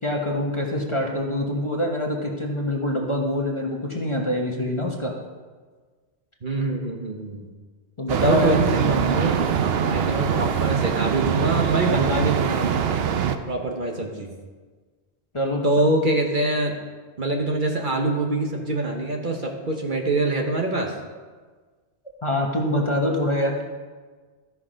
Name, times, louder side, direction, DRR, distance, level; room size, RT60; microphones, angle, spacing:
voice 1, 0.0-5.1 8.0-8.6 15.3-15.6 22.2-23.6, left 1 dB, 25° left, 0 dB, 1.0 m, -25 dB
voice 2, 6.4-7.5 8.2-9.4 9.9-12.8 13.5-14.3 15.6-16.7 17.2-20.9, right 2 dB, 45° right, 2 dB, 1.1 m, -24 dB
sound 1, 8.1-13.4, right 7 dB, 65° right, 0.8 m, -23 dB
13.0 x 5.9 x 5.0 m, 1.4 s
omnidirectional pair, 1.2 m